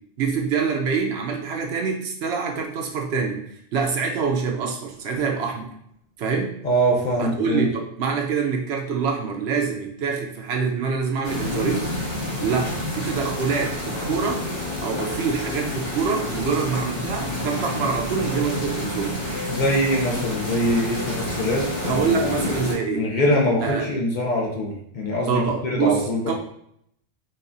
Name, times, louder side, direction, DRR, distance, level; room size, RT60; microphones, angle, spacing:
voice 1, 0.2-3.4 3.7-5.7 6.2-6.5 7.2-11.9 12.4-14.4 14.8-19.2 21.8-23.1 23.6-23.8 25.3-26.3, right 5 dB, 70° right, 2 dB, 0.8 m, -25 dB
voice 2, 6.6-7.7 19.5-22.1 22.9-26.3, equal, 50° left, -2 dB, 0.7 m, -23 dB
sound 1, 11.2-22.7, left 1 dB, 85° left, 1.7 m, -29 dB
4.1 x 2.3 x 2.6 m, 0.72 s
omnidirectional pair, 1.2 m